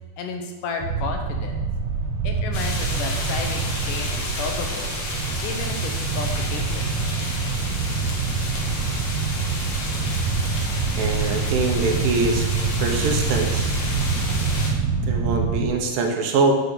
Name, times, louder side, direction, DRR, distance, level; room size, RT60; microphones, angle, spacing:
voice 1, 0.2-1.7 2.2-5.0 5.4-7.0, left 5 dB, 75° left, 4 dB, 2.6 m, -32 dB
sound 1, 0.8-15.7, right 4 dB, 70° right, 2.0 m, -25 dB
sound 2, 2.5-14.7, left 2 dB, 55° left, 2.8 m, -32 dB
voice 2, 11.0-12.5 12.8-13.7 15.1-16.5, right 3 dB, 90° right, 2 dB, 2.8 m, -23 dB
8.8 x 6.1 x 6.9 m, 1.3 s
omnidirectional pair, 3.8 m